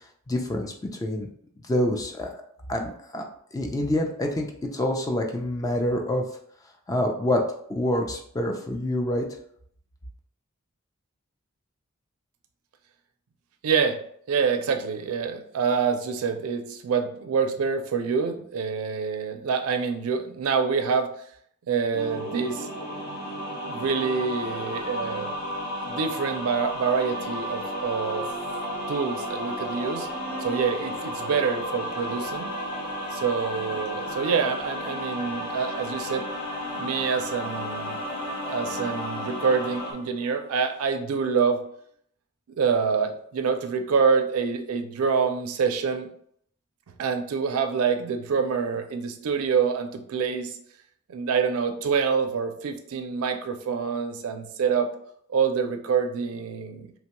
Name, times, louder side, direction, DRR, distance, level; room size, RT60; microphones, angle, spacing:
voice 1, 0.3-1.3 1.7-2.3 2.7-3.2 3.5-6.2 6.9-7.4 7.7-9.3, left 1 dB, 15° left, 2 dB, 0.3 m, -26 dB
voice 2, 13.6-14.0 14.3-21.1 21.7-22.7 23.7-25.4 25.9-28.2 28.6-30.1 30.4-32.5 33.1-36.3 36.7-38.2 38.5-41.6 42.6-46.1 47.0-50.6 51.1-54.9 55.3-56.9, right 5 dB, 85° right, 6 dB, 0.4 m, -26 dB
sound 1, 21.9-39.9, equal, 45° left, 0.8 m, -33 dB
sound 2, 26.6-40.8, equal, 10° right, 0.8 m, -41 dB
2.9 x 2.2 x 2.9 m, 0.66 s
head